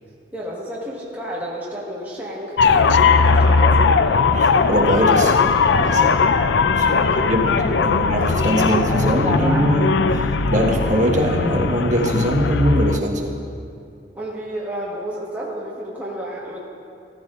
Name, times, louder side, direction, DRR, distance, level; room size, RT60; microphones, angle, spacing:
voice 1, 0.3-4.3 5.9-6.3 7.0-9.8 14.1-16.6, equal, 10° right, -6 dB, 1.6 m, -31 dB
sound 1, 2.6-13.0, left 4 dB, 80° left, 0.5 m, -18 dB
voice 2, 4.4-5.4 5.8-6.0 6.7-13.3, equal, 45° right, -1 dB, 1.5 m, -22 dB
14.5 x 13.5 x 2.6 m, 2.4 s
head